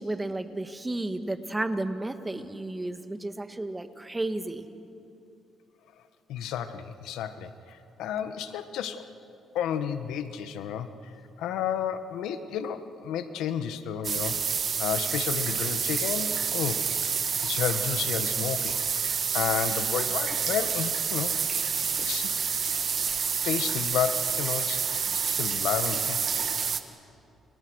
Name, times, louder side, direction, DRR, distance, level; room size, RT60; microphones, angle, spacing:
voice 1, 0.0-4.6, right 2 dB, 15° right, 8 dB, 1.8 m, -32 dB
voice 2, 6.3-9.1 9.5-10.9 11.4-14.4 14.8-16.8 17.4-21.3 22.0-22.3 23.4-26.2, left 9 dB, 90° left, 10 dB, 1.4 m, -31 dB
sound 1, 14.0-26.8, right 6 dB, 50° right, 1.8 m, -28 dB
30.0 x 29.0 x 6.5 m, 2.7 s
cardioid pair, 90°, 0 cm